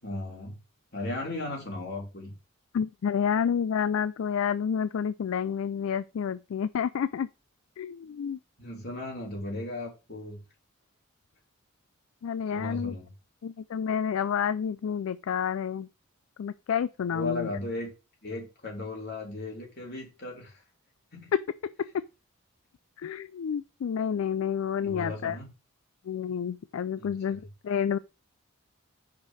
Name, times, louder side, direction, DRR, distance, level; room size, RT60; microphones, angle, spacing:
voice 1, 0.0-0.6 0.9-2.3 8.6-10.4 12.5-13.1 17.1-17.9 18.2-20.6 21.1-21.3 24.8-25.5 27.0-27.4, left 2 dB, 50° left, 3.4 m, -36 dB
voice 2, 2.7-7.3 7.8-8.4 12.2-12.9 13.4-15.9 16.4-17.5 21.3-21.9 23.0-25.4 26.1-28.0, left 7 dB, 65° left, 0.3 m, -29 dB
5.4 x 5.2 x 6.1 m
head